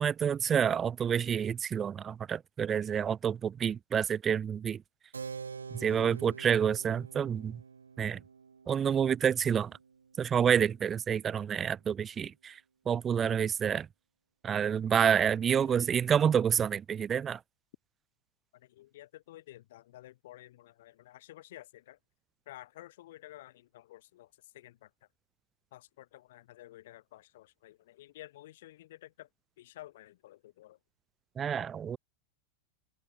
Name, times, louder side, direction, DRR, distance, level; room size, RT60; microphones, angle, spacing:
voice 1, 0.0-4.8 5.7-7.6 8.0-8.2 8.7-9.7 10.2-12.6 12.9-13.9 14.4-17.4 31.4-32.0, right 8 dB, 25° right, 1.0 m, -28 dB
Keyboard (musical), 5.1-11.3, right 5 dB, 80° right, 4.4 m, -47 dB
voice 2, 15.6-16.0 18.5-22.0 22.5-24.3 24.5-24.9 25.7-29.3 29.6-30.8, left 15 dB, 60° left, 2.2 m, -52 dB
figure-of-eight pair, 95°, 0 cm